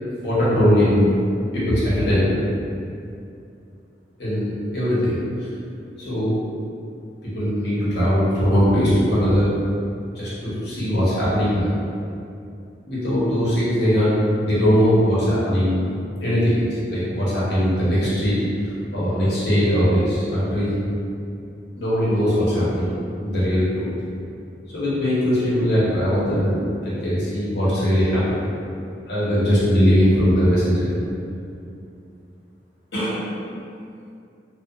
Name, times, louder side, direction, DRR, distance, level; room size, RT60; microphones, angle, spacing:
voice 1, 0.2-1.1 1.5-2.4 4.2-5.2 6.0-6.4 7.2-9.5 10.1-11.7 12.9-15.9 16.2-18.4 18.6-20.7 21.8-22.9 23.2-23.9 24.7-28.4 29.1-30.9 32.9-33.2, equal, 70° left, -10 dB, 0.9 m, -20 dB
2.7 x 2.2 x 2.4 m, 2.5 s
head